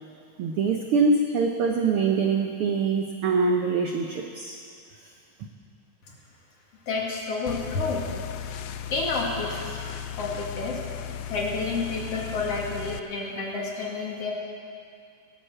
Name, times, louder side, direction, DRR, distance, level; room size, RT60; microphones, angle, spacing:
voice 1, 0.4-4.6 5.0-5.1, right 4 dB, 80° right, 3 dB, 1.2 m, -24 dB
voice 2, 6.9-8.1 8.4-9.9 10.2-14.3, left 3 dB, 55° left, -2 dB, 3.0 m, -30 dB
sound 1, 7.5-13.0, left 10 dB, 80° left, 1.5 m, -36 dB
17.0 x 11.0 x 7.6 m, 2.4 s
omnidirectional pair, 3.6 m